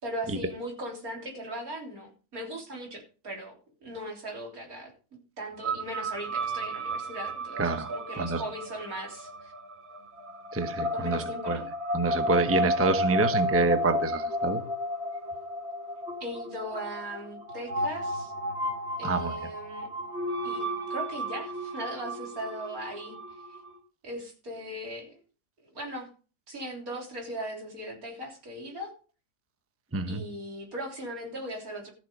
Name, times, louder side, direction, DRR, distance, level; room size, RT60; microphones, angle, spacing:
voice 1, 0.0-3.5 3.8-4.9 5.4-9.5 10.9-11.7 16.2-18.3 19.0-19.9 20.4-23.2 24.0-25.2 25.6-26.1 26.5-28.9 30.1-31.9, right 1 dB, 75° right, 0 dB, 3.9 m, -38 dB
sound 1, 5.6-23.8, equal, 45° right, 1.9 m, -33 dB
voice 2, 7.6-7.9 8.2-8.4 10.5-11.6 11.9-14.6 19.0-19.3 29.9-30.2, right 3 dB, 10° right, 8 dB, 0.8 m, -27 dB
14.0 x 6.8 x 5.3 m, 0.36 s
omnidirectional pair, 1.5 m